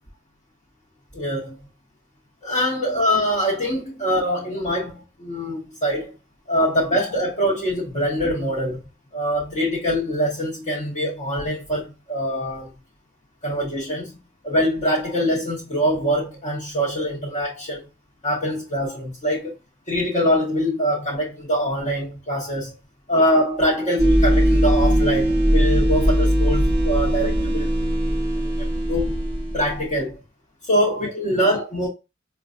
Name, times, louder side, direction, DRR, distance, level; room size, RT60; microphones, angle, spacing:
voice 1, 1.1-1.6 2.4-6.1 6.5-8.8 9.1-12.7 13.4-14.2 14.4-17.8 18.2-19.6 19.9-22.8 23.1-27.7 28.3-29.2 29.5-30.2 30.7-31.9, equal, 35° left, 1.0 m, -24 dB
sound 1, 24.0-29.8, equal, 25° right, 0.9 m, -20 dB
4.6 x 2.2 x 2.5 m
head